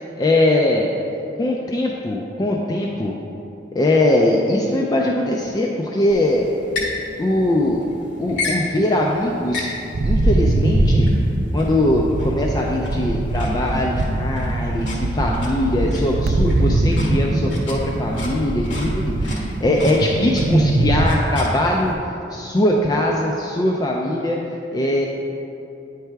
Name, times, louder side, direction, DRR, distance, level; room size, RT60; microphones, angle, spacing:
voice 1, 0.2-0.9 1.4-3.1 3.7-6.4 7.2-7.8 8.2-9.7 10.0-11.1 11.5-21.9 22.3-24.4 24.7-25.1, left 1 dB, 20° left, -1 dB, 0.3 m, -21 dB
sound 1, 6.1-21.9, left 1 dB, 80° left, 1.2 m, -33 dB
sound 2, 9.9-21.1, right 2 dB, 50° right, 0.4 m, -21 dB
9.0 x 3.3 x 4.6 m, 2.8 s
head